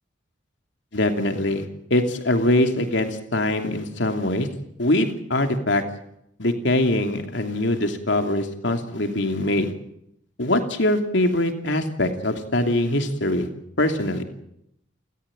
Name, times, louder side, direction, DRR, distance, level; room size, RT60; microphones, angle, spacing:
voice 1, 0.9-1.6 1.9-4.5 4.8-5.8 6.4-9.7 10.4-13.5 13.8-14.2, left 1 dB, 75° left, 5 dB, 2.9 m, -23 dB
30.0 x 14.0 x 8.9 m, 0.77 s
head